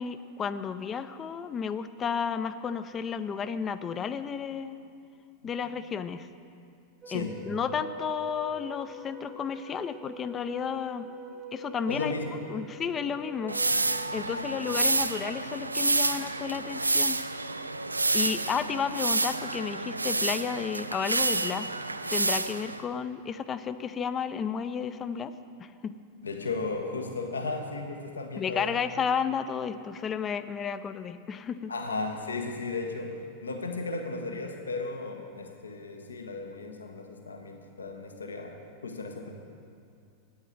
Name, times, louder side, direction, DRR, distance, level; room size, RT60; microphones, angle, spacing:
voice 1, 0.0-4.8 5.4-6.3 7.1-11.1 11.5-12.1 12.5-13.6 14.1-17.2 18.1-21.7 22.1-25.3 25.6-25.9 28.4-31.7, left 7 dB, 25° left, 12 dB, 0.5 m, -32 dB
sound 1, 7.0-13.9, right 1 dB, 25° right, 0.7 m, -44 dB
voice 2, 7.1-7.5 11.9-12.4 13.5-13.7 14.2-14.6 26.2-28.8 31.7-38.5 38.8-39.3, left 3 dB, 75° left, 4 dB, 0.9 m, -35 dB
sound 2, 13.5-22.8, right 2 dB, 80° right, 0.3 m, -29 dB
9.1 x 7.2 x 8.9 m, 2.4 s
figure-of-eight pair, 90°, 0 cm